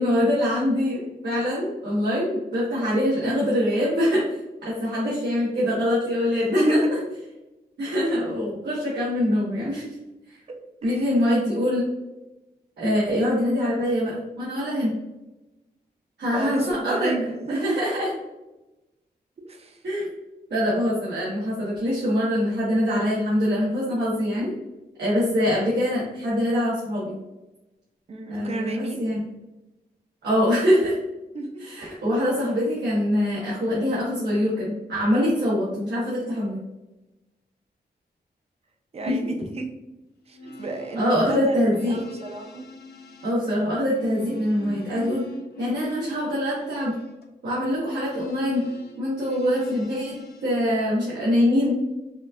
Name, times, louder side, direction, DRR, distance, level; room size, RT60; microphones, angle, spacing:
voice 1, 0.0-6.8 7.8-10.0 10.3-10.4 10.8-11.9 12.8-14.9 16.2-17.1 17.5-18.1 19.8-20.1 20.5-24.5 25.0-27.2 28.3-29.2 30.2-31.0 31.6-36.6 39.0-39.2 40.9-42.0 43.2-45.3 45.6-46.9 47.4-48.7 49.0-50.1 50.4-51.8, equal, 85° right, -9 dB, 1.2 m, -24 dB
voice 2, 6.6-7.0 10.8-11.1 16.3-17.8 19.4-19.8 28.1-29.1 31.3-31.6 38.9-39.7 40.3-41.5 41.9-42.6, right 1 dB, 35° right, 3 dB, 0.5 m, -29 dB
sound 1, 40.2-50.5, right 2 dB, 75° left, 0.5 m, -43 dB
5.0 x 2.5 x 2.4 m, 1.0 s
wide cardioid pair, 165°, 17 cm